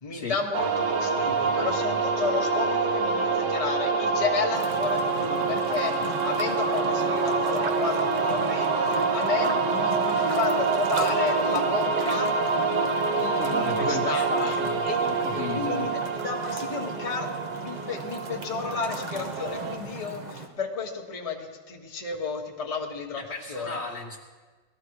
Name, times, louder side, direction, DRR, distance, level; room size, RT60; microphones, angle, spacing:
voice 1, 0.0-12.5 13.2-14.6 14.8-15.0 15.5-17.3 17.6-23.2 23.5-23.8, left 4 dB, 20° left, 1 dB, 1.4 m, -32 dB
sound 1, 0.5-19.8, right 4 dB, 70° right, 1.6 m, -26 dB
sound 2, 4.5-20.5, right 2 dB, 25° right, 1.2 m, -38 dB
voice 2, 13.3-15.9 23.2-24.2, left 3 dB, 40° left, -2 dB, 1.5 m, -34 dB
19.0 x 14.0 x 4.8 m, 1.4 s
omnidirectional pair, 1.9 m